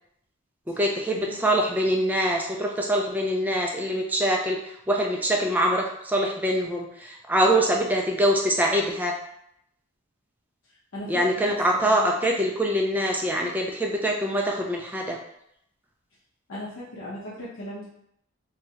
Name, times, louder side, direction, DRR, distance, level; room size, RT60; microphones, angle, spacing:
voice 1, 0.7-9.1 11.1-15.2, equal, 10° right, 0 dB, 0.3 m, -24 dB
voice 2, 10.9-12.0 16.5-17.9, left 1 dB, 70° left, -8 dB, 0.6 m, -38 dB
3.0 x 2.3 x 2.8 m, 0.75 s
head